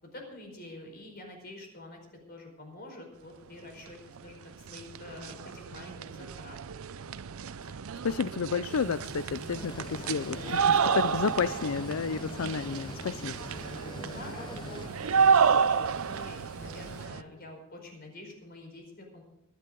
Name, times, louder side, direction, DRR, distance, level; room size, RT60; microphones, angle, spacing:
voice 1, 0.0-6.6 14.1-19.2, left 1 dB, 45° left, 3 dB, 4.8 m, -47 dB
sound 1, 4.2-4.3 4.5-17.2, right 6 dB, 70° right, 0.5 m, -30 dB
voice 2, 8.0-13.4, left 6 dB, 70° left, 14 dB, 0.4 m, -31 dB
sound 2, 8.6-17.1, left 2 dB, 90° left, 5.0 m, -51 dB
sound 3, 9.5-14.9, left 2 dB, 20° left, 0.6 m, -44 dB
24.0 x 10.5 x 3.9 m, 0.83 s
head